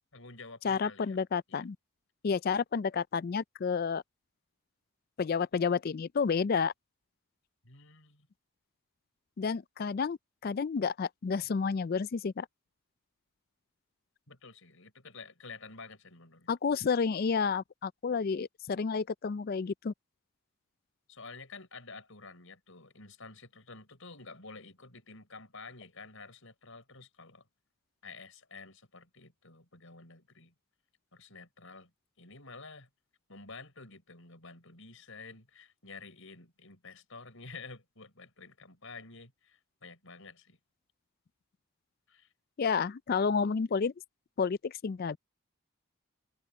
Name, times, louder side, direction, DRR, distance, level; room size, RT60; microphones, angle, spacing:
voice 1, 0.1-1.2 1.5-1.7 7.6-8.3 14.3-16.8 21.1-27.5 28.0-30.5 31.1-31.9 32.2-32.9 33.3-40.6 42.1-42.3, left 4 dB, 65° left, 5.8 m, -50 dB
voice 2, 0.6-1.8 2.2-4.0 5.2-6.7 9.4-10.2 10.4-12.5 16.5-19.9 42.6-43.9 44.4-45.2, left 5 dB, 45° left, 0.3 m, -30 dB
head